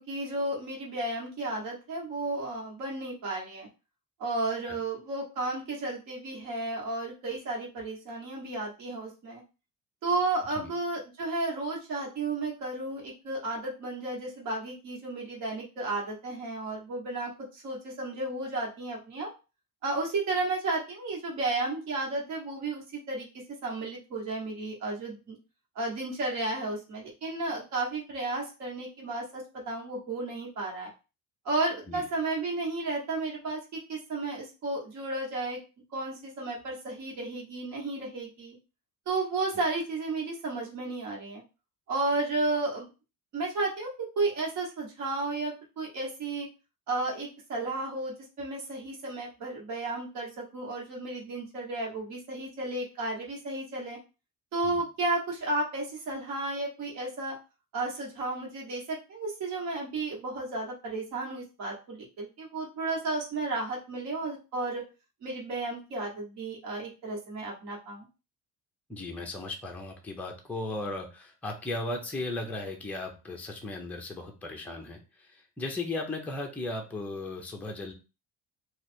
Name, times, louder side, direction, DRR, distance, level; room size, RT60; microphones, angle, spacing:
voice 1, 0.1-3.7 4.2-9.4 10.0-19.3 19.8-23.3 23.6-25.4 25.7-30.9 31.4-35.6 35.9-38.6 39.0-41.4 41.9-42.9 43.3-46.5 46.9-54.0 54.5-57.3 57.7-64.8 65.2-68.1, right 2 dB, 50° right, -3 dB, 1.4 m, -33 dB
voice 2, 68.9-77.9, left 2 dB, 5° left, 1 dB, 0.5 m, -36 dB
3.2 x 2.5 x 4.3 m, 0.31 s
cardioid pair, 170°, 34 cm